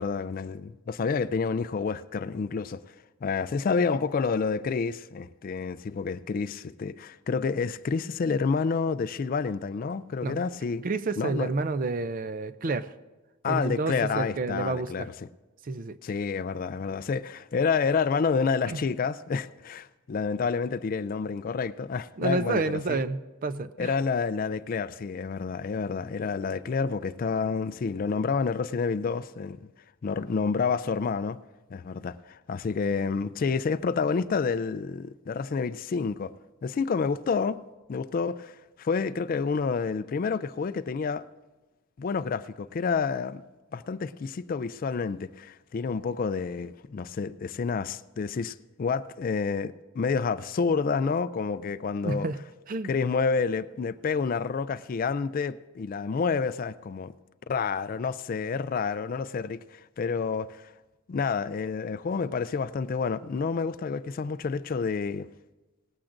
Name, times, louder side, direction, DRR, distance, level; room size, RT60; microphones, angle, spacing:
voice 1, 0.0-2.8 3.2-10.8 11.2-11.5 13.4-15.1 16.0-23.0 23.8-29.7 30.0-31.4 31.7-36.3 36.6-37.6 37.9-41.3 42.0-43.4 43.7-52.3 52.8-57.1 57.5-60.7 61.1-65.3, left 5 dB, 40° left, 0.3 m, -29 dB
voice 2, 10.8-12.9 13.5-15.1 15.6-16.0 18.7-18.8 22.2-23.9 52.0-52.4 52.7-52.9, right 3 dB, 40° right, 0.4 m, -29 dB
18.5 x 14.5 x 2.6 m
head